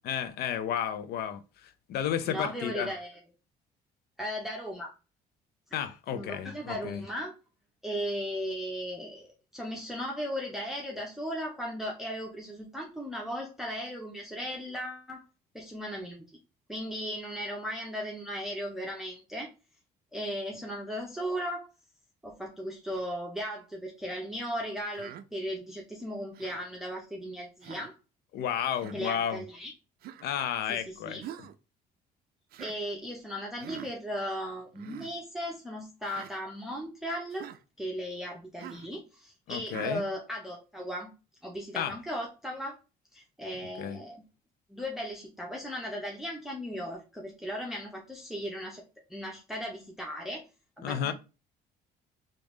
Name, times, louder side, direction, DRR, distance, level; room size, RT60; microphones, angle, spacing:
voice 1, 0.0-2.9 5.7-7.0 28.3-29.4 30.2-31.2 39.5-40.0 41.7-42.0 43.8-44.0 50.8-51.1, left 9 dB, 70° left, 0.5 m, -32 dB
voice 2, 2.2-3.2 4.2-4.9 5.7-5.8 6.1-7.3 7.8-15.2 15.5-16.2 16.7-19.5 20.1-21.7 22.2-27.9 28.9-29.7 30.7-31.2 32.6-37.5 37.8-41.1 41.4-42.8 43.1-44.2 44.7-48.8 49.1-50.4 50.8-51.1, equal, ahead, 0.7 m, -37 dB
Human voice, 24.9-25.2 26.3-26.6 27.6-27.9 28.7-29.0 30.0-30.3 31.2-31.6 32.5-32.8 33.6-33.9 34.7-35.1 36.1-36.3 37.3-37.6 38.6-38.9 39.7-40.0, right 11 dB, 65° right, 0.4 m, -44 dB
3.5 x 2.5 x 3.1 m
cardioid pair, 110°, 17 cm